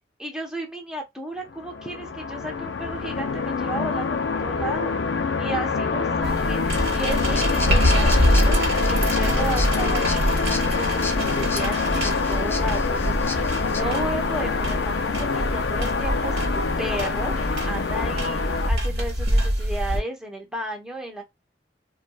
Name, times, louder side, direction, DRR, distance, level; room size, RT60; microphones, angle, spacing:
voice 1, 0.2-4.9 5.4-21.2, right 2 dB, 5° right, 0.9 m, -34 dB
sound 1, 1.5-18.7, left 4 dB, 80° left, 0.5 m, -25 dB
sound 2, 6.2-20.0, equal, 60° right, 1.5 m, -25 dB
sound 3, 7.2-13.8, left 3 dB, 15° left, 0.4 m, -36 dB
4.5 x 2.3 x 2.3 m
head